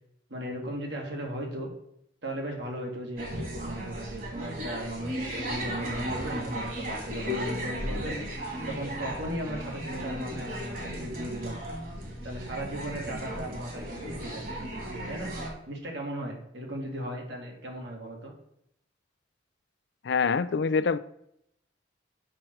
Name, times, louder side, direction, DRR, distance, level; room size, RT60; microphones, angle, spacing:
voice 1, 0.3-1.7 2.2-8.2 8.7-11.6 12.2-14.5 15.1-15.3 15.7-18.3, right 1 dB, 65° right, 0 dB, 2.1 m, -37 dB
sound 1, 3.2-15.5, equal, 45° right, 2.4 m, -35 dB
voice 2, 20.0-21.0, left 5 dB, 65° left, 15 dB, 0.4 m, -25 dB
7.6 x 6.0 x 4.6 m, 0.76 s
head